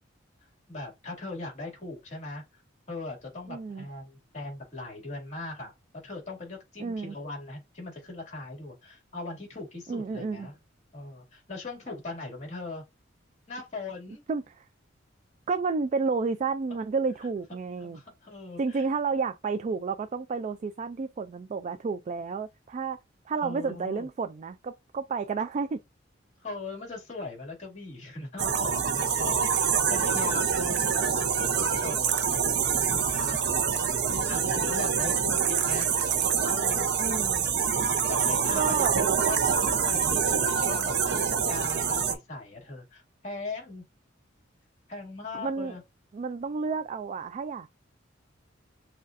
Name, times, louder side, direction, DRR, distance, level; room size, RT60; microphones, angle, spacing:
voice 1, 0.7-2.4 2.9-5.7 6.0-10.6 10.9-12.8 13.5-14.2 17.8-18.9 23.4-24.1 26.4-32.2 32.9-33.4 34.1-35.9 36.5-36.9 38.1-43.8 44.9-45.8, left 2 dB, 35° left, 2.3 m, -40 dB
voice 2, 3.5-3.9 6.8-7.1 9.9-10.5 14.3-14.6 15.5-18.0 18.6-23.0 23.3-25.8 37.0-37.5 38.5-38.9 45.3-45.7 46.1-47.7, right 4 dB, 35° right, 0.3 m, -31 dB
sound 1, 28.4-42.1, right 6 dB, 60° right, 0.7 m, -26 dB
6.4 x 2.4 x 2.5 m
head